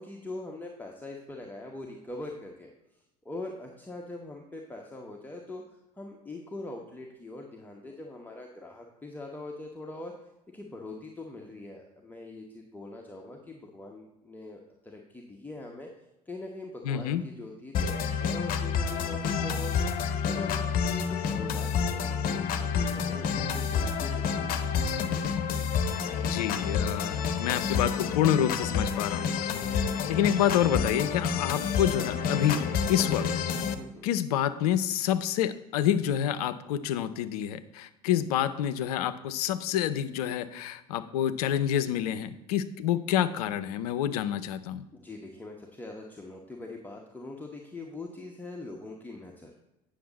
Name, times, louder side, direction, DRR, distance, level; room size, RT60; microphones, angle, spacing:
voice 1, 0.0-2.7 3.2-10.1 10.5-15.9 16.3-24.5 33.8-34.1 44.9-49.5, left 2 dB, 10° left, 0 dB, 1.1 m, -42 dB
voice 2, 16.8-17.2 26.2-29.3 30.1-33.3 34.0-44.8, left 10 dB, 65° left, 13 dB, 0.6 m, -28 dB
sound 1, 17.7-33.7, left 6 dB, 45° left, 0.9 m, -29 dB
9.2 x 6.5 x 4.1 m, 0.94 s
figure-of-eight pair, 70°, 21 cm